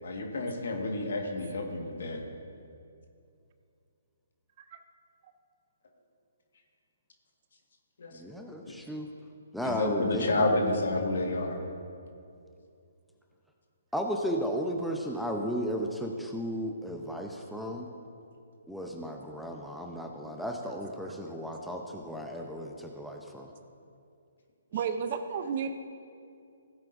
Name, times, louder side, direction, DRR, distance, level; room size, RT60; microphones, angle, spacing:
voice 1, 0.0-2.2 8.0-8.1 8.7-8.8 9.6-11.6 20.2-20.3, left 2 dB, 65° left, 2 dB, 1.7 m, -30 dB
voice 2, 8.1-9.1 9.5-10.6 13.9-17.9 18.7-23.5, equal, ahead, 1 dB, 0.7 m, -34 dB
voice 3, 24.7-25.7, right 6 dB, 45° right, 9 dB, 0.6 m, -31 dB
16.0 x 8.9 x 2.7 m, 2.5 s
hypercardioid pair, 140°, 0 cm